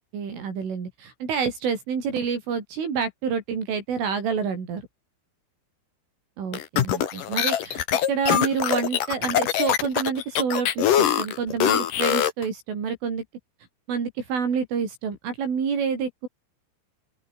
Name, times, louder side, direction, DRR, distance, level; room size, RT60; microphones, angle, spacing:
voice 1, 0.1-4.8 6.4-7.8 8.1-13.2 13.9-16.3, right 6 dB, 75° right, 8.3 m, -28 dB
sound 1, 6.5-12.4, left 10 dB, 55° left, 2.8 m, -23 dB
open air
omnidirectional pair, 5.7 m